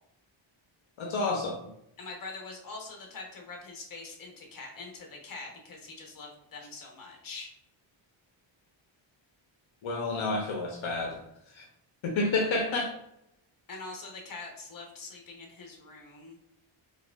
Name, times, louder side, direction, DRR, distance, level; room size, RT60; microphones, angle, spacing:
voice 1, 1.0-1.6 9.8-11.2 11.5-11.7 12.0-12.9, left 3 dB, 70° left, 1 dB, 0.7 m, -29 dB
voice 2, 2.0-7.5 13.7-16.4, left 3 dB, 45° left, 1 dB, 0.9 m, -44 dB
4.6 x 2.4 x 2.3 m, 0.78 s
wide cardioid pair, 130°, 49 cm